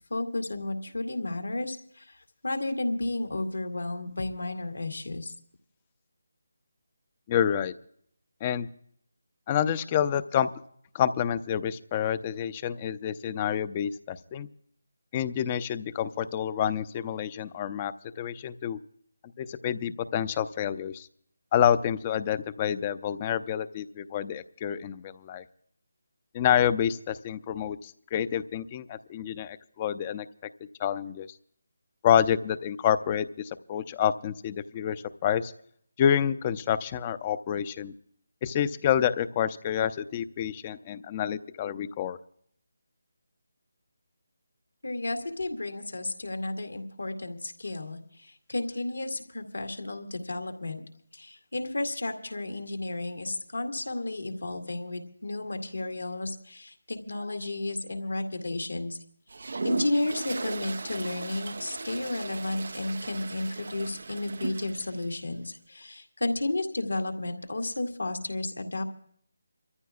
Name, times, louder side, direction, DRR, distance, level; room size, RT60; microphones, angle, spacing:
voice 1, 0.1-5.3 44.8-50.8 51.1-59.0 59.6-68.8, left 2 dB, 80° left, 4 dB, 2.1 m, -32 dB
voice 2, 7.3-7.7 8.4-8.7 9.5-10.5 10.9-14.5 15.1-18.8 19.4-21.1 21.5-25.4 26.3-30.3 30.8-31.3 32.0-35.5 36.0-37.9 38.4-42.2, left 9 dB, 25° left, 15 dB, 0.5 m, -28 dB
Toilet flush, 59.3-65.1, right 3 dB, 60° right, 0.5 m, -37 dB
28.0 x 14.0 x 2.4 m, 0.64 s
figure-of-eight pair, 155°, 0 cm